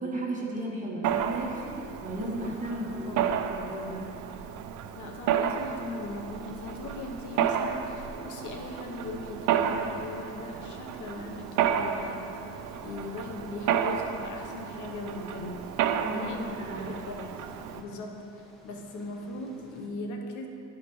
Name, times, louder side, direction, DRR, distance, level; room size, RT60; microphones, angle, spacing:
voice 1, 0.0-4.1 16.0-17.0 17.9-18.0, right 1 dB, 25° right, -3 dB, 1.6 m, -35 dB
Mechanisms, 1.0-17.8, right 8 dB, 85° right, 0.5 m, -32 dB
voice 2, 2.7-3.3 4.9-12.4 12.8-15.6 16.1-16.5 16.8-17.5 17.7-20.5, left 2 dB, 80° left, 2 dB, 0.9 m, -39 dB
sound 1, 5.4-19.9, left 1 dB, ahead, 1.3 m, -56 dB
12.0 x 5.0 x 3.1 m, 2.8 s
cardioid pair, 90°, 30 cm